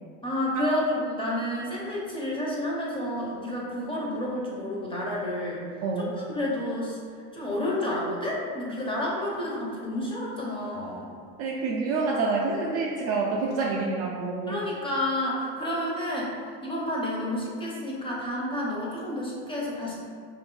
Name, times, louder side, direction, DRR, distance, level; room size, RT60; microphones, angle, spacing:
voice 1, 0.2-5.7 6.0-7.0 7.3-11.1 14.5-16.3 16.6-20.0, left 1 dB, 15° left, -4 dB, 0.6 m, -30 dB
voice 2, 11.4-14.6, right 3 dB, 40° right, -3 dB, 0.4 m, -27 dB
2.6 x 2.5 x 3.7 m, 2.2 s
supercardioid pair, 110°, 40 cm